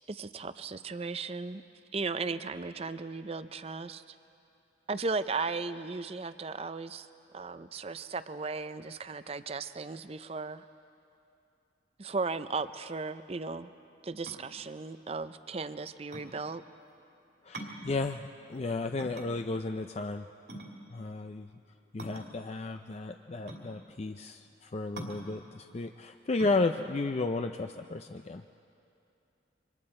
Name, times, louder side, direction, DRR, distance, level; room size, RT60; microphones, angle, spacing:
voice 1, 0.0-1.6 1.9-4.2 4.9-7.1 7.3-10.7 12.0-13.7 14.0-16.6, right 4 dB, 35° right, 12 dB, 0.5 m, -36 dB
sound 1, 14.2-28.5, right 1 dB, 65° right, 2.7 m, -46 dB
voice 2, 17.4-20.3 20.9-21.5 21.9-28.4, left 3 dB, 35° left, 6 dB, 0.4 m, -33 dB
28.0 x 25.0 x 4.4 m, 2.7 s
head